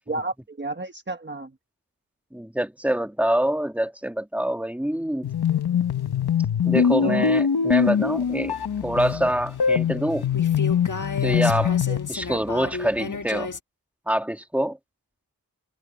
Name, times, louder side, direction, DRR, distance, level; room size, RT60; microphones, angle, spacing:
voice 1, 0.1-1.5 6.6-7.3 11.9-12.0, right 2 dB, 30° right, 1.4 m, -32 dB
voice 2, 2.3-5.3 6.7-8.6 8.8-10.3 11.2-11.8 12.1-13.5 14.1-14.8, right 1 dB, 5° right, 2.2 m, -25 dB
sound 1, 5.2-12.1, left 7 dB, 85° left, 1.2 m, -23 dB
sound 2, 7.9-13.6, left 4 dB, 55° left, 1.6 m, -35 dB
wide cardioid pair, 85°, 37 cm